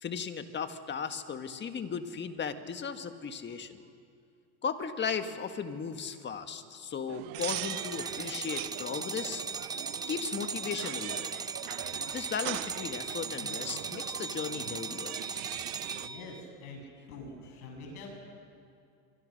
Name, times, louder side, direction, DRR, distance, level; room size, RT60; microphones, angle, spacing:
voice 1, 0.0-3.8 4.6-9.4 10.1-11.5 12.1-15.2, left 6 dB, 25° left, 8 dB, 1.6 m, -36 dB
sound 1, 7.1-16.1, right 20 dB, 80° right, 0.6 m, -42 dB
sound 2, 7.4-16.4, right 5 dB, 10° right, 0.6 m, -38 dB
voice 2, 15.9-16.8 17.1-18.1, left 3 dB, 85° left, 2 dB, 7.2 m, -45 dB
25.5 x 24.5 x 6.6 m, 2.5 s
supercardioid pair, 120°, 42 cm